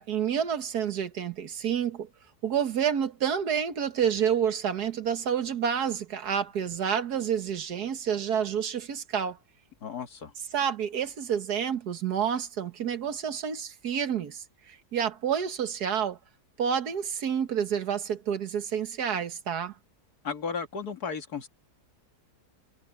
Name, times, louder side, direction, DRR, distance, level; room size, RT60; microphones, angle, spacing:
voice 1, 0.0-2.1 2.4-9.4 10.5-16.2 16.6-19.7, right 8 dB, 75° right, 1.9 m, -29 dB
voice 2, 9.8-10.3 20.2-21.5, left 5 dB, 70° left, 2.4 m, -34 dB
omnidirectional pair, 1.7 m